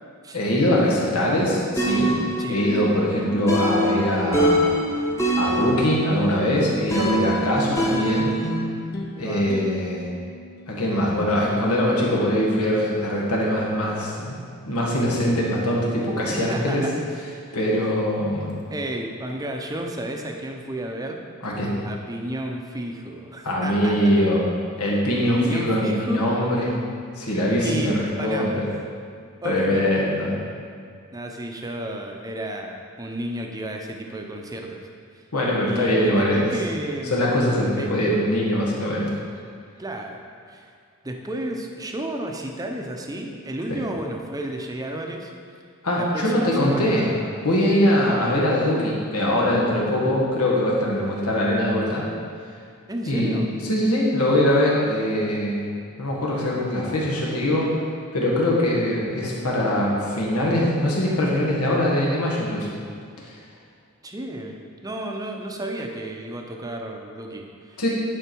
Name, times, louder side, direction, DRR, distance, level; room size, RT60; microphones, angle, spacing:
voice 1, 0.3-2.1 2.5-4.7 5.4-8.3 9.2-10.1 10.7-14.4 14.7-16.9 17.5-18.5 21.4-21.7 23.4-24.4 24.8-26.8 27.1-28.7 29.4-30.3 35.3-36.5 37.1-39.1 45.8-47.1 47.4-52.1 53.0-53.4 53.7-55.6 56.0-57.7 58.1-62.7 63.3-63.4 67.8-67.9, left 1 dB, 90° left, -4 dB, 1.8 m, -22 dB
sound 1, 1.8-8.6, right 1 dB, 10° left, 1.0 m, -24 dB
sound 2, 7.9-12.6, left 1 dB, 45° left, 0.8 m, -37 dB
voice 2, 9.2-9.5 16.3-16.9 18.7-21.2 21.8-24.0 25.4-26.3 27.6-28.8 29.4-29.9 31.1-34.8 35.1-35.2 35.6-37.3 37.7-37.9 39.8-40.2 40.5-40.7 41.0-45.3 46.0-47.5 48.0-48.4 52.9-53.5 64.0-67.8, right 1 dB, 15° right, 2 dB, 0.7 m, -32 dB
10.0 x 5.0 x 4.6 m, 2.2 s
head